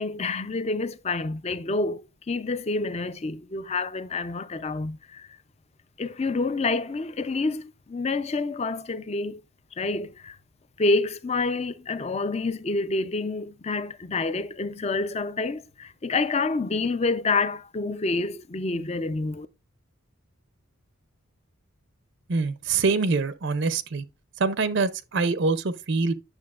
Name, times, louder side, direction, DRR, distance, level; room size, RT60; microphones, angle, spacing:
voice 1, 0.0-5.4 6.0-9.4 9.7-10.4 10.8-19.5, left 3 dB, 30° left, 0.4 m, -28 dB
voice 2, 22.3-24.0 24.4-26.1, right 4 dB, 55° right, 0.5 m, -25 dB
9.7 x 6.6 x 2.4 m
head